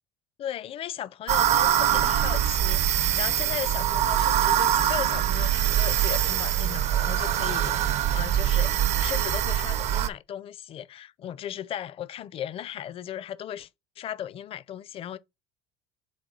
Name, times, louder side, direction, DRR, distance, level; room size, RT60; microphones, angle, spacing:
voice 1, 0.4-8.7 9.0-13.7 14.0-15.2, left 10 dB, 35° left, 0.5 m, -36 dB
sound 1, 1.3-10.1, right 11 dB, 45° right, 0.6 m, -23 dB
7.3 x 2.6 x 5.3 m
cardioid pair, 140°, 16 cm